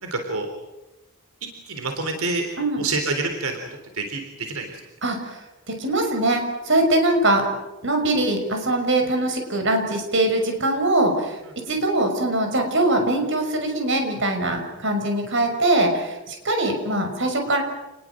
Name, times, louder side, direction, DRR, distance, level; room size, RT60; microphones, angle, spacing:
voice 1, 0.0-0.5 1.7-2.4 2.8-3.6 3.9-4.7, right 3 dB, 85° right, 5 dB, 3.9 m, -27 dB
voice 2, 5.0-5.4 5.8-7.5 7.8-11.4 11.7-17.6, right 1 dB, 60° right, 4 dB, 6.0 m, -22 dB
29.0 x 21.0 x 7.8 m, 1.0 s
head